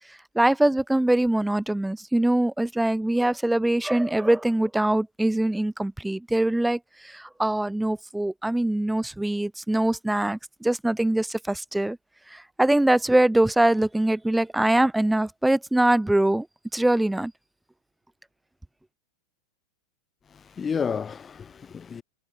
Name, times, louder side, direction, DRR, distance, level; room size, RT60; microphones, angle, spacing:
voice 1, 0.1-12.0 12.3-16.5 16.7-17.3, right 1 dB, 5° right, 0.5 m, -23 dB
voice 2, 20.3-22.0, left 6 dB, 20° left, 1.3 m, -31 dB
figure-of-eight pair, 90°, 0 cm